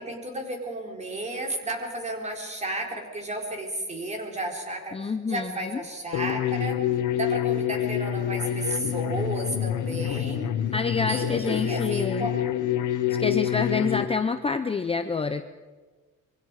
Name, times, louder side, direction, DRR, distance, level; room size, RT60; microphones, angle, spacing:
voice 1, 0.0-6.8 7.1-10.5 11.1-12.5, right 1 dB, 20° right, 1 dB, 4.2 m, -33 dB
voice 2, 4.9-5.8 10.7-12.3 13.1-15.5, left 4 dB, 20° left, 8 dB, 0.7 m, -27 dB
sound 1, 6.1-14.0, left 10 dB, 85° left, 1.4 m, -27 dB
26.5 x 23.5 x 4.9 m, 1.3 s
cardioid pair, 155°, 30 cm